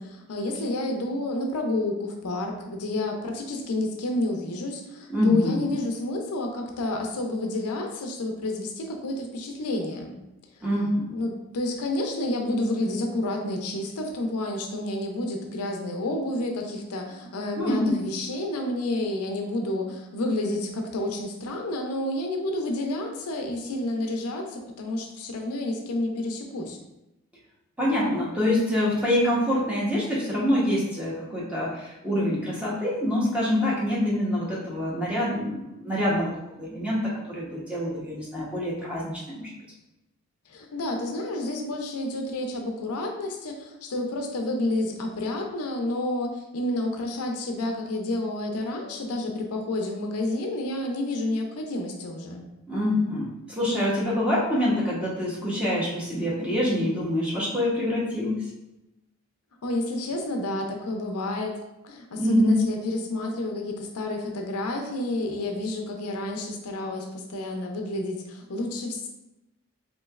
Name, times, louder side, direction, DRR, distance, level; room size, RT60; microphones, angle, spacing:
voice 1, 0.0-10.1 11.1-26.8 40.5-52.4 59.6-61.6 61.8-69.1, left 1 dB, 80° left, 3 dB, 0.5 m, -30 dB
voice 2, 5.1-5.8 10.6-11.1 17.6-18.0 27.8-36.3 36.6-39.5 52.7-58.4 62.2-62.7, left 1 dB, 5° right, -6 dB, 0.8 m, -25 dB
3.7 x 3.0 x 2.3 m, 0.94 s
head